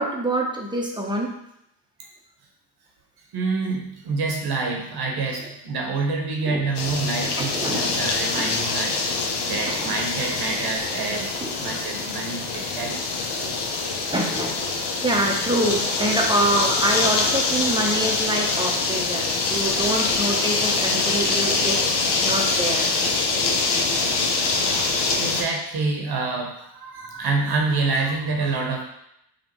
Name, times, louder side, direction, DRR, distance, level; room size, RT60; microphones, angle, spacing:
voice 1, 0.0-1.3 6.5-6.7 7.2-8.0 8.3-8.6 9.6-9.9 11.4-11.5 14.1-14.6 14.9-21.9 22.2-22.9, right 1 dB, 10° right, -1 dB, 0.8 m, -25 dB
voice 2, 3.3-13.0 25.2-28.8, right 3 dB, 50° right, 1 dB, 1.1 m, -27 dB
sound 1, 6.7-25.4, left 3 dB, 55° left, 0.8 m, -24 dB
5.1 x 2.5 x 3.0 m, 0.78 s
supercardioid pair, 70°, 49 cm